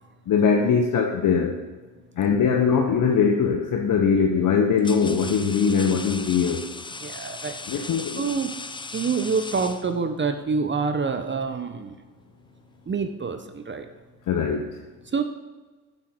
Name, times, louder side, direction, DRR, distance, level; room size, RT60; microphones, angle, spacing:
voice 1, 0.3-1.6 2.2-6.7 7.7-8.2 14.3-14.8, left 6 dB, 50° left, 4 dB, 1.3 m, -21 dB
sound 1, 3.2-3.5 4.3-10.3, left 3 dB, 10° left, 0.8 m, -38 dB
voice 2, 7.0-7.6 8.2-8.5 8.9-11.9 12.9-13.9 15.1-15.2, right 5 dB, 25° right, 8 dB, 1.1 m, -26 dB
14.5 x 7.7 x 4.6 m, 1.3 s
hypercardioid pair, 60°, 41 cm